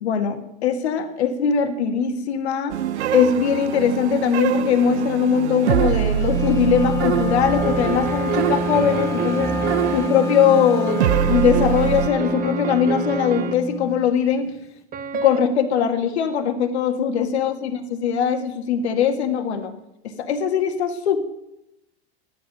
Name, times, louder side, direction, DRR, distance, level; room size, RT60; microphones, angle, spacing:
voice 1, 0.0-2.8 3.1-9.5 9.9-14.5 15.2-19.7 20.2-21.2, left 7 dB, 75° left, 6 dB, 1.8 m, -21 dB
sound 1, 2.7-12.1, right 10 dB, 80° right, 0.7 m, -25 dB
Wind instrument woodwind instrument, 6.2-14.1, left 1 dB, 10° left, 1.3 m, -28 dB
sound 2, 7.4-10.1 10.9-13.5 14.9-15.4, right 5 dB, 25° right, 1.1 m, -28 dB
13.0 x 10.0 x 6.1 m, 0.87 s
hypercardioid pair, 105°, 33 cm